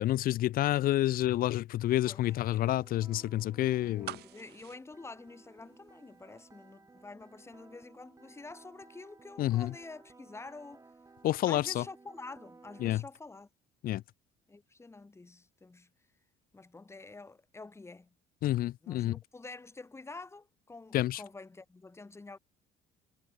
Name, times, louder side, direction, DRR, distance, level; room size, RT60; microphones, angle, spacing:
voice 1, 0.0-4.2 9.4-9.7 11.2-11.8 12.8-13.0 13.8-14.0 18.4-19.2 20.9-21.2, left 14 dB, 60° left, 0.5 m, -29 dB
sound 1, 2.2-13.0, right 3 dB, 20° right, 3.4 m, -58 dB
voice 2, 3.8-10.8 11.5-13.5 14.5-15.9 16.5-18.1 18.8-22.4, left 3 dB, 15° left, 1.8 m, -48 dB
sound 2, 4.0-6.1 6.4-6.5, right 15 dB, 75° right, 3.5 m, -45 dB
cardioid pair, 110°, 17 cm